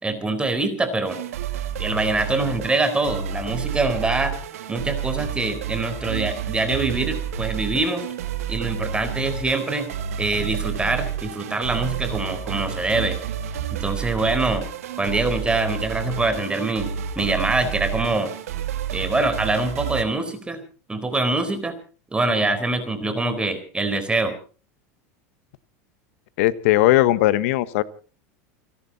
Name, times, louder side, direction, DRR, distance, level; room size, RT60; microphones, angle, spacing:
voice 1, 0.0-1.2 1.8-4.3 4.7-8.0 8.5-9.9 10.2-13.2 13.7-14.7 15.0-18.3 18.9-20.6 20.9-21.7 22.1-24.3, right 2 dB, 15° right, 9 dB, 4.2 m, -24 dB
sound 1, 1.0-20.0, right 9 dB, 85° right, 2.3 m, -30 dB
voice 2, 26.4-27.8, left 16 dB, 70° left, 15 dB, 1.3 m, -18 dB
30.0 x 11.5 x 4.2 m, 0.38 s
hypercardioid pair, 105°, 8 cm